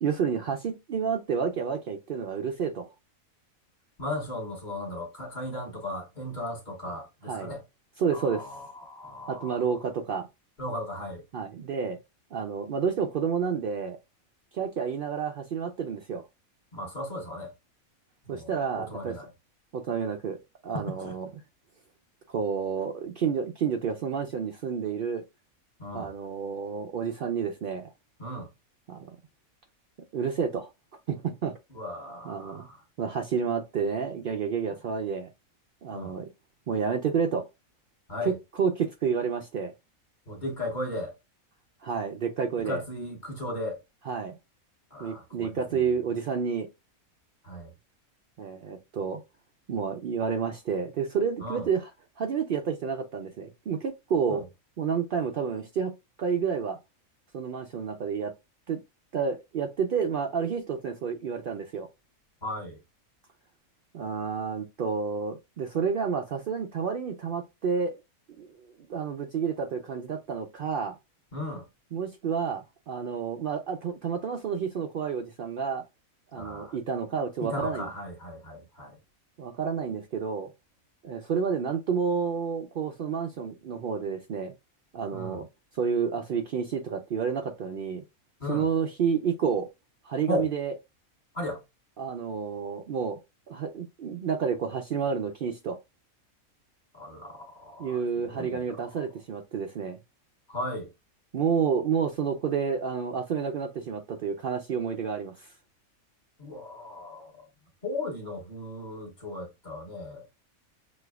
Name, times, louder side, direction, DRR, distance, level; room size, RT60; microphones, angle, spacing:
voice 1, 0.0-2.9 7.3-7.5 8.0-8.5 9.3-10.3 11.3-12.0 12.3-14.0 14.5-16.2 18.3-19.2 19.7-21.3 22.3-25.2 25.9-27.9 28.9-29.2 30.1-30.7 31.1-31.6 32.2-32.7 33.0-35.3 35.8-36.3 36.7-37.4 38.2-39.7 41.8-42.8 44.0-44.4 45.0-46.7 48.4-49.2 49.7-51.9 52.2-54.4 54.8-56.8 57.3-58.3 58.7-58.8 59.1-61.9 63.9-68.0 68.4-68.5 68.9-71.0 71.9-75.8 76.3-77.9 79.4-80.5 81.0-84.5 84.9-85.5 85.7-88.0 88.5-89.7 90.0-90.7 92.0-93.2 93.5-95.8 97.8-100.0 101.3-105.5, right 6 dB, 90° right, 0.4 m, -30 dB
voice 2, 4.0-7.6 8.1-9.6 10.6-11.2 16.7-17.5 18.2-19.3 20.7-21.1 25.8-26.1 28.2-28.5 31.7-32.8 35.9-36.1 38.1-38.3 40.3-41.1 42.6-43.8 44.9-45.8 47.4-47.7 51.4-51.7 54.3-54.4 62.4-62.8 71.3-71.7 76.3-76.8 77.4-78.9 85.1-85.4 88.4-88.7 90.3-90.5 91.3-91.6 96.9-98.6 100.5-100.9 106.4-107.5 107.8-110.3, left 1 dB, 35° left, 1.1 m, -36 dB
6.2 x 2.6 x 2.3 m
omnidirectional pair, 1.5 m